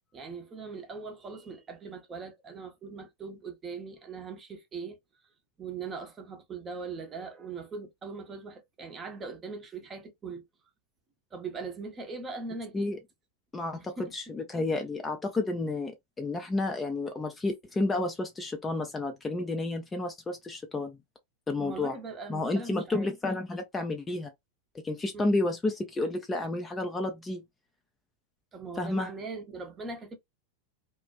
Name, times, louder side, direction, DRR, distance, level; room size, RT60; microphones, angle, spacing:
voice 1, 0.1-5.0 5.6-10.4 11.3-12.9 13.7-14.1 21.6-23.1 25.1-25.4 28.5-30.2, right 4 dB, 20° right, 0.7 m, -40 dB
voice 2, 13.5-21.0 21.5-21.9 22.3-24.3 24.8-27.4 28.8-29.1, left 2 dB, 15° left, 0.4 m, -31 dB
2.3 x 2.1 x 2.4 m
figure-of-eight pair, 90°, 0 cm